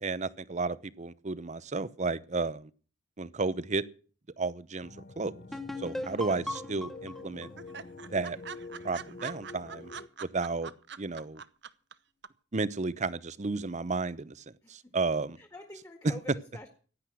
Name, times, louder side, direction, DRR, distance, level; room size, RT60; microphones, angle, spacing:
voice 1, 0.0-2.7 3.2-3.8 4.4-5.4 5.8-7.5 8.1-8.4 8.8-9.9 10.3-10.7 11.0-11.4 12.5-15.4, right 3 dB, 40° right, 0.8 m, -33 dB
sound 1, 4.8-10.1, left 3 dB, 50° left, 0.9 m, -47 dB
sound 2, 5.5-9.1, left 1 dB, ahead, 1.1 m, -40 dB
sound 3, 5.9-6.5 6.8-6.9 7.2-7.3 7.6-11.9 12.2-12.3, right 7 dB, 70° right, 0.9 m, -43 dB
voice 2, 14.6-15.0 15.4-16.7, left 1 dB, 15° left, 1.9 m, -47 dB
16.0 x 11.0 x 6.2 m
head